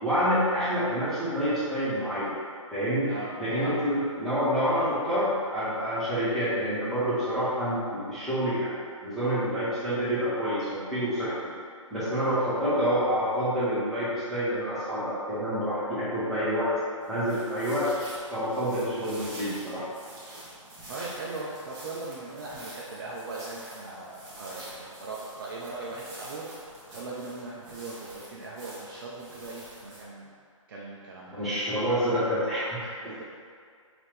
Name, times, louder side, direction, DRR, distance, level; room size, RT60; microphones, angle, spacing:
voice 1, 0.0-2.3 2.7-3.1 3.4-8.7 9.0-11.4 11.9-16.7 17.1-17.9 18.3-19.8 31.3-32.9, equal, ahead, -15 dB, 1.4 m, -27 dB
voice 2, 3.0-3.8 12.2-12.4 20.9-26.5 26.9-30.3 30.7-31.5 33.0-33.2, right 3 dB, 40° right, -4 dB, 0.6 m, -39 dB
sound 1, 17.0-30.0, right 1 dB, 20° right, 1.1 m, -46 dB
5.8 x 2.7 x 3.3 m, 2.2 s
hypercardioid pair, 150°, 17 cm